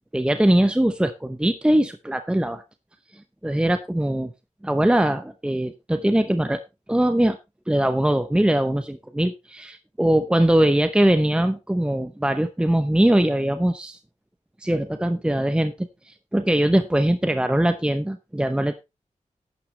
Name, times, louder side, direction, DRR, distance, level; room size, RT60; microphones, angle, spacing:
voice 1, 0.1-2.6 3.4-4.3 4.6-6.6 6.9-7.4 7.7-14.0 14.6-18.8, right 1 dB, 5° right, 9 dB, 0.7 m, -21 dB
11.5 x 9.2 x 3.2 m, 0.24 s
wide cardioid pair, 115°, 13 cm